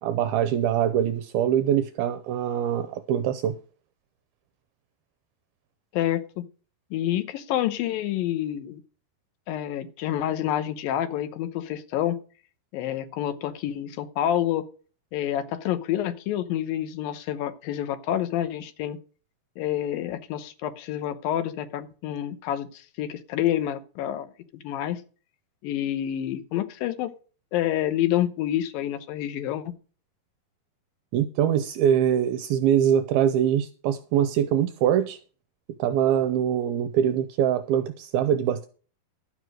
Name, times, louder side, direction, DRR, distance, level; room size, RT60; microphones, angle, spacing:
voice 1, 0.0-3.6 31.1-35.2 35.8-38.7, right 9 dB, 80° right, 2.5 m, -23 dB
voice 2, 5.9-6.4 6.9-8.8 9.5-12.2 12.7-14.7 15.1-19.0 19.6-24.3 24.5-25.0 25.6-27.1 27.5-29.6, left 12 dB, 75° left, 2.5 m, -28 dB
12.0 x 6.0 x 6.3 m
omnidirectional pair, 4.5 m